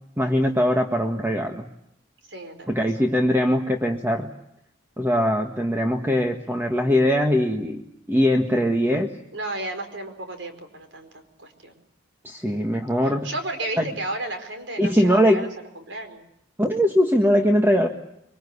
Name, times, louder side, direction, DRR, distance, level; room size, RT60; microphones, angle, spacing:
voice 1, 0.2-1.7 2.7-4.3 5.0-9.1 12.2-13.3 13.8-13.9 14.8-15.5 16.6-17.9, equal, 10° right, 3 dB, 1.6 m, -21 dB
voice 2, 2.3-2.9 9.3-11.7 13.2-15.5 15.7-16.2, right 2 dB, 75° right, 7 dB, 4.7 m, -33 dB
24.5 x 24.5 x 8.4 m, 0.80 s
head